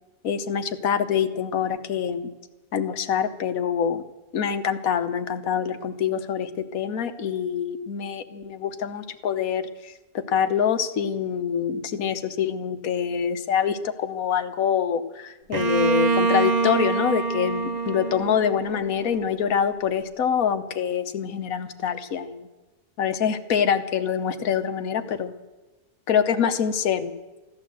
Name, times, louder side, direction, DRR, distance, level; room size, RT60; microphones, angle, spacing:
voice 1, 0.2-2.3 2.7-4.0 4.3-22.5 23.0-25.3 26.1-27.1, left 8 dB, 65° left, 9 dB, 1.4 m, -25 dB
Bowed string instrument, 15.5-19.3, right 4 dB, 60° right, 0.4 m, -25 dB
15.5 x 11.5 x 7.9 m, 1.1 s
omnidirectional pair, 1.7 m